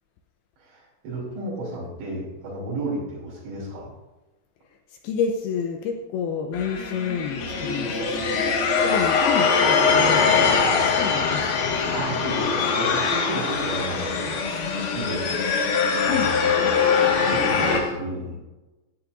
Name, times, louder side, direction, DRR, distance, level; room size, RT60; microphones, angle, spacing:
voice 1, 0.6-3.9 11.9-14.4 14.8-15.3 15.6-17.0 17.3-18.4, right 1 dB, 75° right, -6 dB, 5.1 m, -33 dB
voice 2, 4.9-8.5 8.8-10.3 11.0-11.7 16.1-16.3, left 6 dB, 80° left, 4 dB, 2.3 m, -29 dB
sound 1, 6.5-17.8, left 5 dB, 60° left, 3.3 m, -22 dB
15.5 x 9.0 x 2.5 m, 1.1 s
omnidirectional pair, 5.3 m